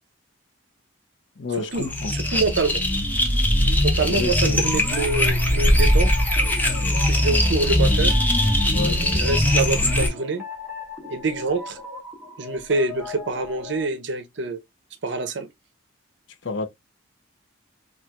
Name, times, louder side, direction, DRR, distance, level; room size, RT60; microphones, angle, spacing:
voice 1, 1.4-2.1 4.1-4.7 8.7-9.1 16.4-16.7, left 3 dB, 65° left, 0.6 m, -29 dB
sound 1, 1.7-10.1, left 1 dB, 10° left, 0.6 m, -20 dB
voice 2, 2.1-2.8 3.8-6.2 7.1-8.2 9.1-10.4 11.1-11.8 12.4-14.6 15.0-15.5, right 3 dB, 60° right, 0.6 m, -26 dB
sound 2, 4.6-13.9, left 4 dB, 10° right, 1.0 m, -38 dB
4.2 x 2.4 x 2.2 m
head